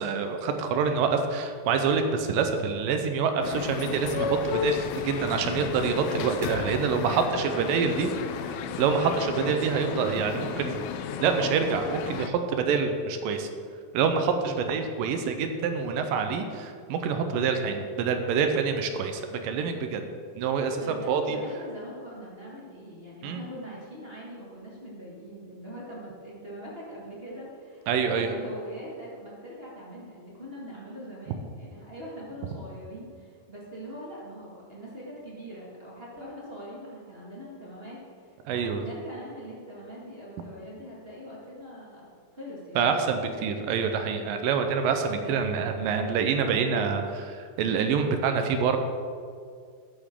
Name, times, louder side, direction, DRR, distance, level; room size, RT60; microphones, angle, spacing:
voice 1, 0.0-8.1 8.8-10.8 11.2-13.5 13.9-20.0 20.4-21.4 23.2-23.4 27.9-28.3 38.5-38.8 42.8-48.8, right 6 dB, 80° right, 6 dB, 2.4 m, -26 dB
sound 1, 3.4-12.3, left 7 dB, 85° left, 1.7 m, -33 dB
voice 2, 7.3-8.4 9.1-9.3 10.3-11.0 20.8-43.0 44.9-45.7 46.0-46.2, equal, 25° right, -6 dB, 1.3 m, -43 dB
13.0 x 9.0 x 3.7 m, 2.2 s
omnidirectional pair, 4.2 m